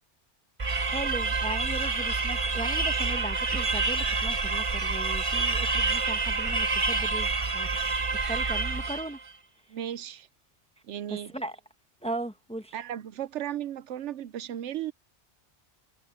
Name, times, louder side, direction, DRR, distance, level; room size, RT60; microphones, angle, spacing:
sound 1, 0.6-9.2, right 3 dB, 30° right, 1.0 m, -28 dB
voice 1, 0.9-7.9 8.3-9.2 11.1-11.6 12.0-12.7, right 1 dB, 5° left, 1.0 m, -37 dB
voice 2, 9.7-10.3 10.8-11.3 12.7-14.9, right 11 dB, 75° right, 0.9 m, -35 dB
omnidirectional pair, 1.2 m